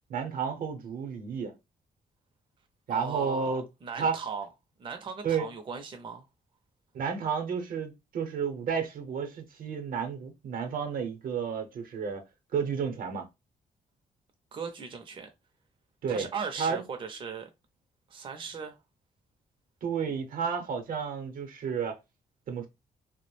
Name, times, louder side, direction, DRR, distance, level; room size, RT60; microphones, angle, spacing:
voice 1, 0.1-1.5 2.9-3.6 4.0-4.2 5.2-5.5 6.9-12.2 12.5-13.3 16.0-16.3 16.6-16.8 19.8-22.0 22.5-22.7, right 6 dB, 75° right, 0.7 m, -31 dB
voice 2, 2.9-4.5 4.8-6.3 14.5-15.3 16.1-17.5 18.1-18.8, right 5 dB, 35° right, 0.5 m, -38 dB
2.3 x 2.0 x 3.1 m
cardioid pair, 110°, 15 cm